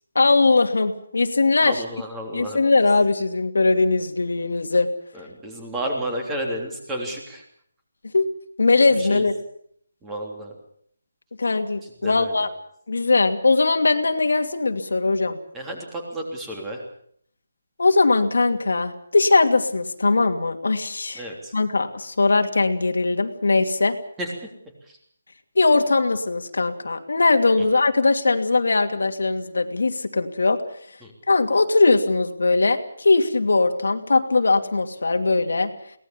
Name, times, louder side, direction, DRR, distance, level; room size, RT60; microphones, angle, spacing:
voice 1, 0.1-1.8 2.3-4.9 8.1-8.3 8.6-9.3 11.4-12.5 12.9-15.4 17.8-21.2 21.5-24.0 25.6-30.6 31.3-35.7, left 3 dB, 80° left, 6 dB, 2.6 m, -20 dB
voice 2, 1.6-2.6 5.1-7.4 8.9-9.3 10.0-10.5 11.8-12.4 15.5-16.8 21.1-21.5 24.2-24.3 24.8-25.0 27.6-27.7 31.0-31.1, right 1 dB, 10° right, 1 dB, 3.4 m, -32 dB
23.0 x 18.5 x 7.2 m, 0.64 s
hypercardioid pair, 175°, 0 cm